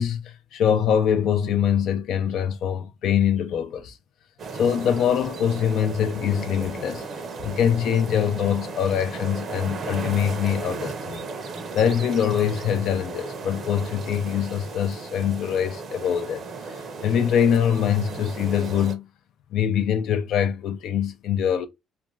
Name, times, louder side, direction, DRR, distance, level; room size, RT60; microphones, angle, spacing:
voice 1, 0.0-4.0 4.5-7.0 7.4-11.2 11.5-16.4 16.7-19.1 19.5-21.7, left 8 dB, 70° left, 0.4 m, -23 dB
sound 1, 4.4-18.9, right 4 dB, 55° right, 0.6 m, -35 dB
2.4 x 2.2 x 3.0 m
cardioid pair, 85°, 0 cm